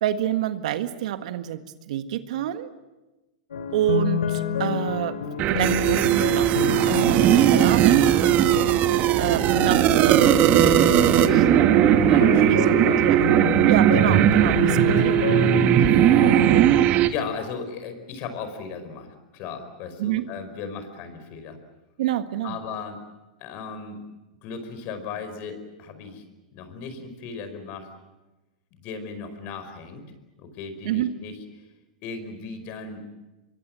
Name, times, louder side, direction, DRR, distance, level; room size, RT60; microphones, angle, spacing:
voice 1, 0.0-2.7 3.7-5.2 5.5-8.3 9.2-12.0 12.5-13.2 13.7-15.2 20.0-20.2 22.0-22.6 30.8-31.1, right 11 dB, 65° right, 9 dB, 1.7 m, -28 dB
sound 1, 3.5-16.6, left 6 dB, 85° left, 2.8 m, -29 dB
sound 2, 5.4-17.1, right 11 dB, 40° right, 1.4 m, -18 dB
voice 2, 12.0-13.1 13.3-13.5 14.7-14.9 15.8-15.9 17.0-21.6 22.4-23.0 23.4-24.0 24.4-26.2 26.5-27.9 28.7-30.0 30.4-31.4 32.0-33.0, left 5 dB, 45° left, 9 dB, 5.0 m, -36 dB
25.5 x 23.0 x 7.7 m, 1.1 s
hypercardioid pair, 115°, 4 cm